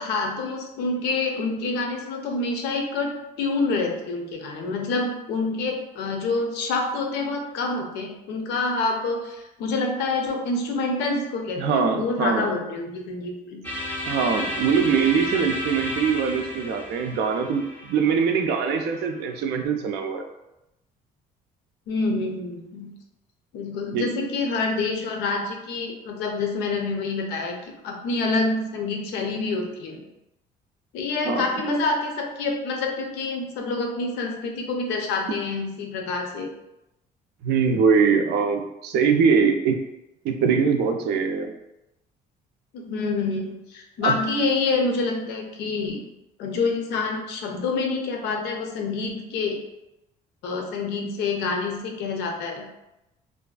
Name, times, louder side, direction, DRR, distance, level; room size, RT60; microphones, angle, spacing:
voice 1, 0.0-13.6 15.4-15.5 21.9-22.9 23.5-27.6 27.8-30.0 30.9-36.5 42.7-46.0 46.4-49.6 50.4-52.6, left 3 dB, 85° left, 2 dB, 0.5 m, -27 dB
voice 2, 11.6-12.5 14.1-20.2 23.9-24.1 31.2-31.5 37.4-39.8 40.2-41.5 44.0-44.2, right 6 dB, 75° right, 5 dB, 0.4 m, -22 dB
sound 1, 13.6-19.6, left 1 dB, 10° left, 0.5 m, -33 dB
2.5 x 2.4 x 2.3 m, 0.90 s
cardioid pair, 110°, 17 cm